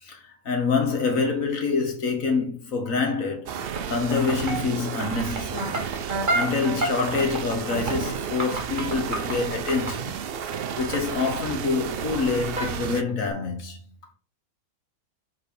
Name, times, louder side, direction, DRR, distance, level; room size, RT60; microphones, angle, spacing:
voice 1, 0.0-3.5 3.9-5.8 6.3-10.2 10.8-13.8, left 4 dB, 60° left, 1.8 m, -26 dB
sound 1, 3.5-9.9 10.9-11.2 11.4-12.2 12.5-12.8 13.1-13.3, right 1 dB, 35° right, 1.8 m, -30 dB
sound 2, 3.5-13.0, right 8 dB, 60° right, 0.6 m, -32 dB
6.9 x 3.9 x 5.3 m
omnidirectional pair, 1.6 m